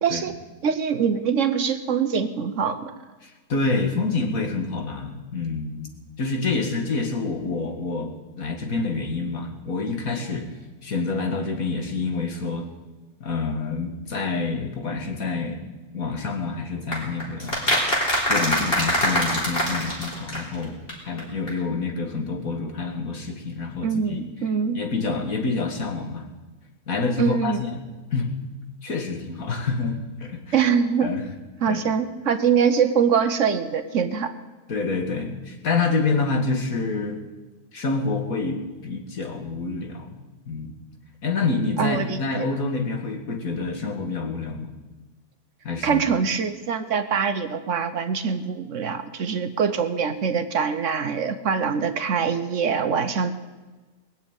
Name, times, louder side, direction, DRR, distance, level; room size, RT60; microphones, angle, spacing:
voice 1, 0.0-0.3 0.6-2.9 23.8-24.8 27.2-27.6 30.5-31.1 31.6-34.3 41.8-42.5 45.8-53.3, right 6 dB, 60° right, 10 dB, 1.2 m, -23 dB
voice 2, 3.2-5.9 6.2-8.1 8.4-10.5 10.8-12.6 13.2-15.6 15.9-18.0 18.3-20.7 21.1-24.2 24.7-26.3 26.9-27.8 28.1-28.3 28.8-30.5 31.0-31.3 31.7-31.8 34.7-37.2 37.7-40.2 40.5-40.7 41.2-44.7 45.6-46.0, left 3 dB, 70° left, 3 dB, 2.4 m, -27 dB
sound 1, 16.9-20.9 21.2-21.3 21.5-21.6, equal, 40° left, 4.1 m, -24 dB
20.5 x 7.5 x 8.9 m, 1.2 s
omnidirectional pair, 1.5 m